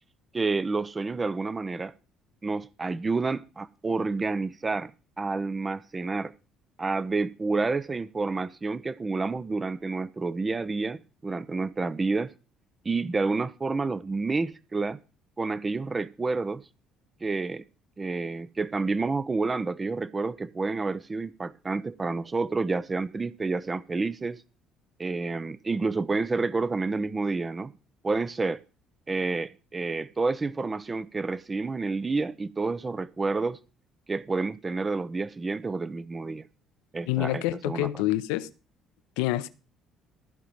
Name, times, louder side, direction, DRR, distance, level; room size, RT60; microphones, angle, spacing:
voice 1, 0.3-1.9 2.4-4.9 5.2-6.3 6.8-12.3 12.8-15.0 15.4-16.6 17.2-17.6 18.0-24.4 25.0-27.7 28.0-28.6 29.1-33.6 34.1-36.5 36.9-37.9, right 3 dB, 30° right, 0.6 m, -29 dB
voice 2, 37.1-38.5 39.2-39.5, left 16 dB, 75° left, 0.6 m, -27 dB
14.5 x 5.0 x 7.3 m
hypercardioid pair, 55°, 0 cm